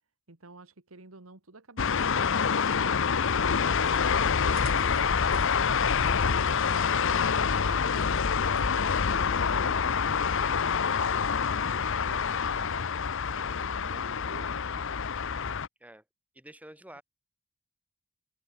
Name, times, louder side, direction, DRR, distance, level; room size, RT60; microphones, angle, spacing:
voice 1, 0.3-3.4 3.9-5.3 5.8-8.4 9.0-12.9 13.2-14.9 16.9-17.0, right 2 dB, 90° right, 2.1 m, -50 dB
sound 1, 1.8-15.7, left 6 dB, 65° left, 0.8 m, -26 dB
sound 2, 3.8-10.1, right 1 dB, 75° right, 3.3 m, -47 dB
voice 2, 16.3-17.0, right 1 dB, 5° right, 6.0 m, -49 dB
head